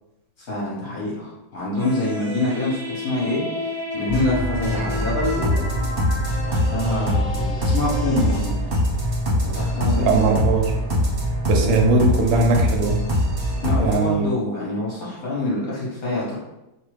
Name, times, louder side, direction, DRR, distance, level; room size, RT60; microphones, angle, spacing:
voice 1, 0.4-5.7 6.5-8.6 9.4-10.4 11.6-11.8 13.6-16.4, left 1 dB, 60° left, -6 dB, 1.1 m, -26 dB
sound 1, 1.8-8.4, left 2 dB, 25° left, 0.7 m, -32 dB
sound 2, 4.1-14.0, equal, 40° right, 0.9 m, -23 dB
voice 2, 10.0-10.7 11.5-13.0 13.8-14.3, right 3 dB, 80° right, 2 dB, 1.3 m, -20 dB
3.0 x 2.3 x 3.1 m, 0.95 s
omnidirectional pair, 2.1 m